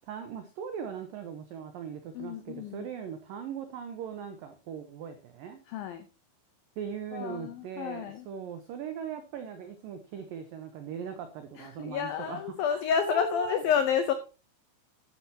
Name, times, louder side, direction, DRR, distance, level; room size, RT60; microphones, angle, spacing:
voice 1, 0.1-5.6 6.8-12.4 12.7-13.6, right 7 dB, 85° right, 8 dB, 2.0 m, -39 dB
voice 2, 2.1-2.9 5.7-6.1 7.1-8.3 11.6-14.1, left 7 dB, 85° left, 9 dB, 2.0 m, -30 dB
12.0 x 10.5 x 2.9 m, 0.31 s
omnidirectional pair, 5.5 m